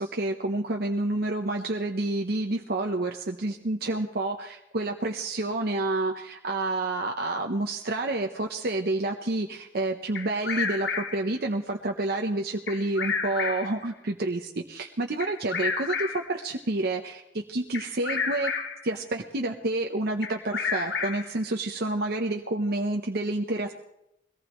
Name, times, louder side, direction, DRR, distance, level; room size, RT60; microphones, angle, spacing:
voice 1, 0.0-18.5 18.8-23.7, right 2 dB, 60° right, 2 dB, 0.9 m, -29 dB
Bird vocalization bird call bird song, 10.1-11.3 12.7-13.8 15.2-16.4 17.7-18.9 20.2-21.4, left 5 dB, 65° left, 1.4 m, -31 dB
22.5 x 18.0 x 3.1 m, 0.83 s
head